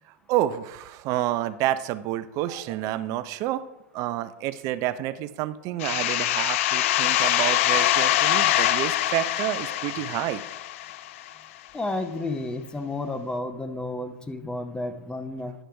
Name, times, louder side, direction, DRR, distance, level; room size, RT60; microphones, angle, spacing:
voice 1, 0.3-3.6 3.9-10.4, right 13 dB, 45° right, 13 dB, 0.6 m, -29 dB
sound 1, 5.8-11.3, left 14 dB, 65° left, 0.4 m, -24 dB
voice 2, 11.7-15.5, left 2 dB, 10° left, 8 dB, 0.7 m, -31 dB
10.0 x 6.1 x 3.4 m, 0.92 s
hypercardioid pair, 115°, 7 cm